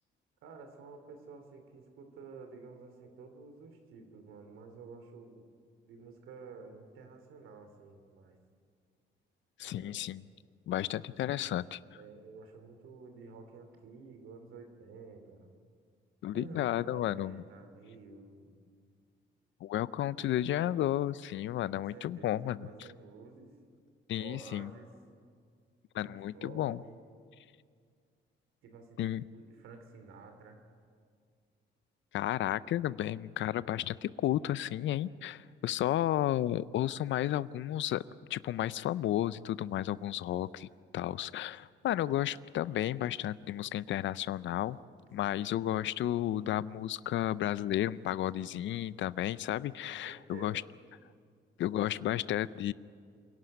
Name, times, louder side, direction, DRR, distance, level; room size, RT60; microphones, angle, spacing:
voice 1, 0.4-5.5 5.8-8.4 9.6-10.0 11.3-11.6 11.9-15.6 16.3-18.6 21.7-23.6 24.2-24.9 26.0-27.0 28.6-30.6 45.2-45.6 49.8-50.8, right 4 dB, 90° right, 6 dB, 2.8 m, -51 dB
voice 2, 9.6-10.2 10.7-11.8 16.2-17.4 19.6-22.7 24.1-24.7 25.9-26.8 29.0-29.2 32.1-38.0 38.3-40.7 40.9-44.8 45.1-50.6 51.6-52.7, left 12 dB, 70° left, 18 dB, 0.6 m, -32 dB
27.0 x 11.5 x 9.4 m, 2.1 s
cardioid pair, 90°, 20 cm